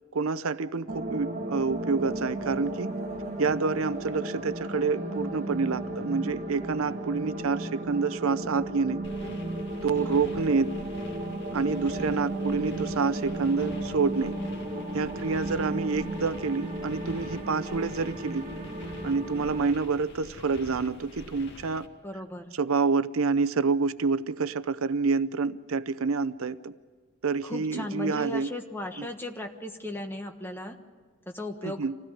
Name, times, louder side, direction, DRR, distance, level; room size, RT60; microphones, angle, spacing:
voice 1, 0.1-3.0 3.4-9.0 9.8-10.8 11.5-14.3 14.9-18.5 19.0-21.9 22.5-26.7 27.2-28.5 29.0-29.1 31.6-31.9, right 4 dB, 75° right, 0.6 m, -28 dB
sound 1, 0.9-19.6, right 1 dB, 30° right, 1.9 m, -34 dB
sound 2, 9.0-21.9, left 1 dB, 55° left, 2.3 m, -46 dB
voice 2, 9.9-10.3 22.0-22.6 27.4-30.8 31.3-31.8, left 1 dB, 10° left, 1.4 m, -36 dB
26.0 x 16.5 x 9.9 m
head